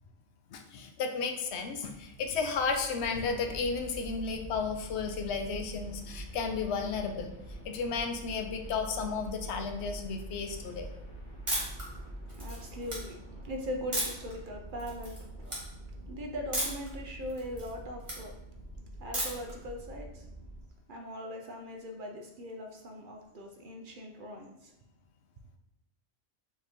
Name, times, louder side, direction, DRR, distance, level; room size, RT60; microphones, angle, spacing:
voice 1, 0.5-7.3 7.6-10.9, left 5 dB, 75° left, 5 dB, 0.8 m, -33 dB
sound 1, 1.3-20.6, right 1 dB, 50° left, 0.9 m, -45 dB
sound 2, 11.5-11.8 12.3-13.0 13.9-14.3 14.8-15.2 15.4-15.6 16.5-16.9 17.3-18.2 19.1-19.5, right 1 dB, 25° right, 1.4 m, -33 dB
voice 2, 12.3-15.6 16.1-18.4 19.0-20.3 20.9-24.7, left 1 dB, 60° right, 2 dB, 0.6 m, -40 dB
4.8 x 2.8 x 3.5 m, 0.85 s
omnidirectional pair, 1.2 m